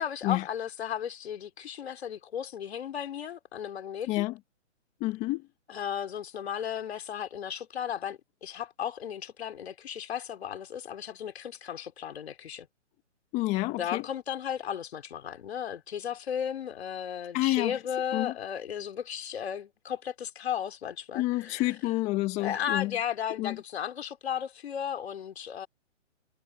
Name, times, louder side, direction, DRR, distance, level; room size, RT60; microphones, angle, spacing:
voice 1, 0.0-4.2 5.7-12.7 13.8-21.8 22.4-25.7, left 9 dB, 60° left, 3.7 m, -35 dB
voice 2, 5.0-5.4 13.3-14.0 17.3-17.8 18.1-18.3 21.1-22.9 23.4-23.5, left 18 dB, 20° left, 1.4 m, -28 dB
hypercardioid pair, 150°, 36 cm